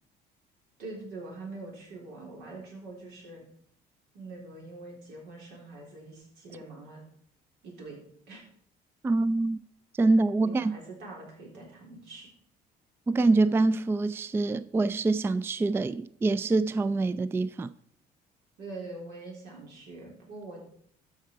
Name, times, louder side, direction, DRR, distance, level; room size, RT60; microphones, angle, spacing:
voice 1, 0.8-3.4 4.1-7.0 7.6-8.0 8.3-8.4 10.4-12.3 18.6-20.6, right 2 dB, 90° right, 3.8 m, -44 dB
voice 2, 9.0-9.6 10.0-10.7 13.1-17.7, right 3 dB, 15° right, 0.3 m, -25 dB
13.0 x 5.8 x 4.6 m
cardioid pair, 110°, 17 cm